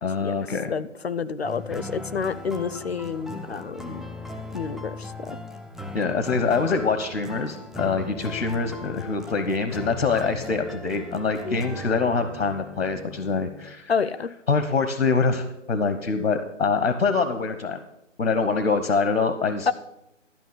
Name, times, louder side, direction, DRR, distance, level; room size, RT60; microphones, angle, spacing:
voice 1, 0.0-0.7 5.9-13.9 14.5-17.8 18.2-19.7, left 4 dB, 80° left, 10 dB, 1.0 m, -24 dB
voice 2, 0.7-4.1 4.5-5.4 11.4-11.6 13.9-14.3 19.7-19.8, left 5 dB, 55° left, 17 dB, 0.5 m, -29 dB
sound 1, 1.4-13.7, left 2 dB, ahead, 0.4 m, -38 dB
12.5 x 5.7 x 6.6 m, 0.87 s
hypercardioid pair, 175°, 38 cm